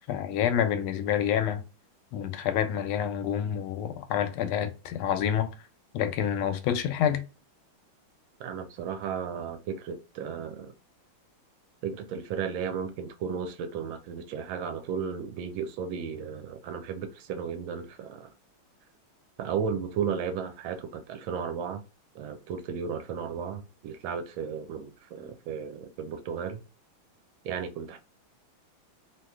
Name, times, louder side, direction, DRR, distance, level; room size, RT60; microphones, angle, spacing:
voice 1, 0.1-1.6 2.1-5.5 5.9-7.2, left 9 dB, 85° left, 1.4 m, -28 dB
voice 2, 8.4-10.7 11.8-18.3 19.4-21.8 22.1-26.6 27.4-28.0, right 7 dB, 80° right, 1.3 m, -34 dB
3.2 x 2.9 x 2.3 m
omnidirectional pair, 2.3 m